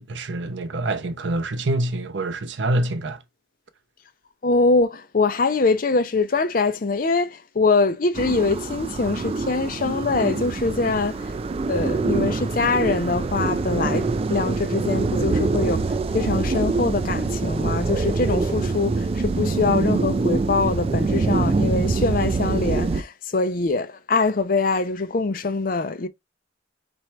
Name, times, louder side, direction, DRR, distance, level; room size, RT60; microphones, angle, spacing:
voice 1, 0.0-3.2, right 2 dB, 85° right, 0.7 m, -26 dB
voice 2, 4.4-11.3 11.7-26.1, left 3 dB, 50° left, 0.6 m, -23 dB
sound 1, 8.1-23.0, right 3 dB, 30° right, 0.3 m, -24 dB
4.3 x 2.6 x 4.5 m
head